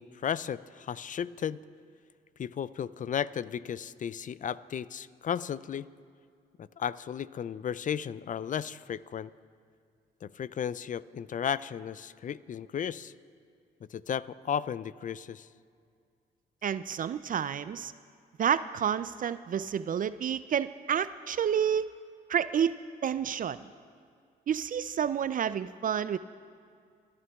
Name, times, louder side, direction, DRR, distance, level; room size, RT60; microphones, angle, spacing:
voice 1, 0.0-1.6 2.4-5.9 6.6-9.3 10.2-13.1 13.9-15.5, left 8 dB, 40° left, 18 dB, 0.4 m, -34 dB
voice 2, 16.6-17.9 18.4-21.9 22.3-22.7 23.0-23.6 24.5-26.2, right 8 dB, 45° right, 15 dB, 0.4 m, -29 dB
26.5 x 11.5 x 2.3 m, 2.2 s
supercardioid pair, 55°, 20 cm